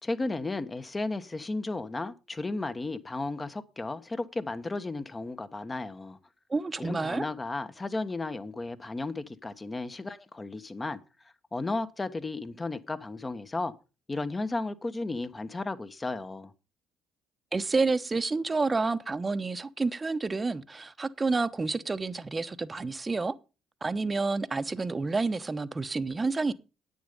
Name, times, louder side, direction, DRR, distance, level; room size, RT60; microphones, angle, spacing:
voice 1, 0.0-6.2 6.8-11.0 11.5-13.7 14.1-16.5, left 2 dB, 25° left, 1.3 m, -34 dB
voice 2, 6.5-7.3 17.5-23.3 23.8-26.5, right 3 dB, 25° right, 1.0 m, -29 dB
10.5 x 8.8 x 5.3 m
hypercardioid pair, 55°, 0 cm